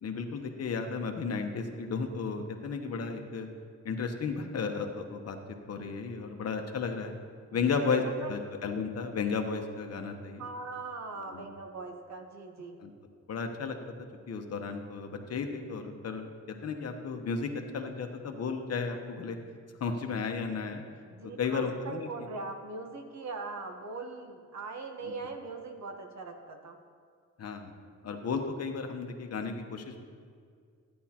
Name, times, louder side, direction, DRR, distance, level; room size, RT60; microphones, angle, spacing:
voice 1, 0.0-3.5 3.8-5.4 5.7-7.1 7.5-8.0 8.3-10.4 11.2-11.5 12.8-12.9 13.3-13.8 14.3-19.4 19.8-20.8 21.4-22.1 25.0-25.1 27.4-27.7 28.0-30.0, left 5 dB, 60° left, 5 dB, 0.9 m, -34 dB
voice 2, 7.5-8.3 10.4-12.8 21.0-26.8, right 3 dB, 70° right, 4 dB, 1.1 m, -41 dB
14.0 x 9.4 x 2.9 m, 2.1 s
wide cardioid pair, 135°, 29 cm